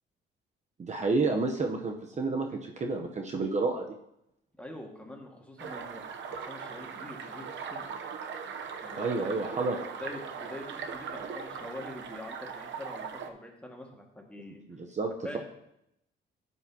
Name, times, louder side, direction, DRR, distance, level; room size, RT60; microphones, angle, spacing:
voice 1, 0.8-3.9 9.0-9.8 14.7-15.4, right 3 dB, 35° right, 3 dB, 0.8 m, -30 dB
voice 2, 4.6-6.0 6.3-7.9 8.8-9.1 9.3-9.5 10.0-14.6 15.2-15.4, left 1 dB, 5° left, 0 dB, 1.8 m, -44 dB
sound 1, 5.6-13.3, right 6 dB, 70° right, 0.8 m, -39 dB
11.5 x 8.4 x 2.9 m, 0.81 s
cardioid pair, 90°, 20 cm